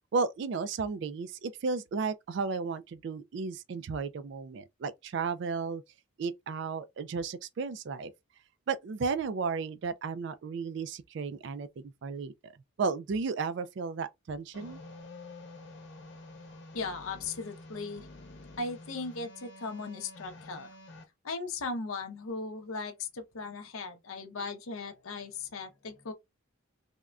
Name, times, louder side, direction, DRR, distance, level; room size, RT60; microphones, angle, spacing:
voice 1, 0.1-5.8 6.2-8.1 8.7-12.5 12.8-14.8, right 4 dB, 55° right, 0.3 m, -34 dB
sound 1, 14.5-21.0, left 2 dB, 55° left, 0.9 m, -49 dB
voice 2, 16.7-18.1 18.6-20.7 21.2-26.1, left 3 dB, 80° left, 0.6 m, -38 dB
3.5 x 2.1 x 2.3 m
head